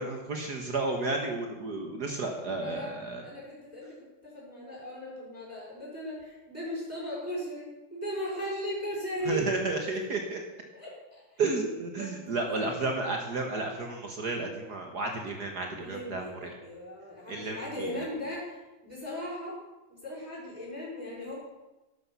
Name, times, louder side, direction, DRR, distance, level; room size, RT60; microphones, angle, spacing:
voice 1, 0.0-3.2 9.2-10.4 11.4-16.6 17.3-18.0, right 3 dB, 55° right, 3 dB, 1.9 m, -32 dB
voice 2, 2.5-2.9 3.2-4.0 4.2-9.4 10.7-11.4 12.0-12.8 15.7-19.6 19.9-21.3, equal, 5° right, -7 dB, 6.3 m, -38 dB
12.0 x 11.0 x 7.2 m, 1.1 s
omnidirectional pair, 2.3 m